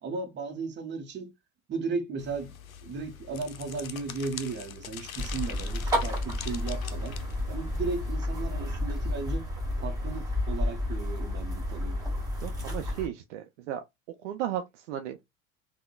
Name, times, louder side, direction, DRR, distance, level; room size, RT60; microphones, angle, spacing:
voice 1, 0.0-1.3 1.7-2.5 2.8-7.2 7.5-9.5 9.8-12.0, right 4 dB, 25° right, 0.8 m, -35 dB
sound 1, 2.2-8.1, left 8 dB, 85° left, 0.5 m, -43 dB
sound 2, 5.2-13.1, left 1 dB, 10° right, 1.6 m, -31 dB
voice 2, 12.4-13.8 14.2-15.2, right 11 dB, 60° right, 0.5 m, -35 dB
3.6 x 2.1 x 2.2 m
figure-of-eight pair, 75°, 40 cm